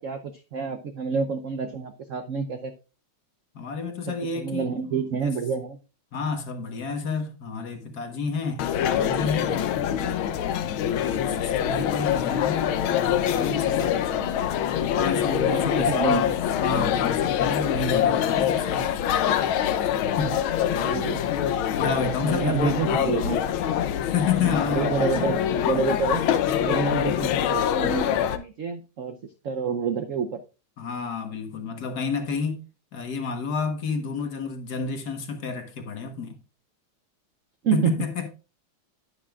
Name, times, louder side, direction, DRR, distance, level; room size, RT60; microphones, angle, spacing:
voice 1, 0.0-2.7 4.3-5.8 10.0-10.2 14.1-14.3 15.5-16.3 20.2-20.4 20.7-21.2 22.2-23.4 24.4-26.3 26.6-30.4 37.6-38.0, right 5 dB, 80° right, 0.7 m, -28 dB
voice 2, 3.5-5.3 6.1-9.6 10.4-14.0 14.8-16.2 16.6-18.9 20.0-20.4 21.7-22.8 24.0-25.3 30.8-32.6 32.9-36.4 37.7-38.3, left 5 dB, 50° left, 1.6 m, -30 dB
sound 1, 8.6-28.4, left 9 dB, 75° left, 1.5 m, -25 dB
10.5 x 9.9 x 2.4 m
omnidirectional pair, 2.3 m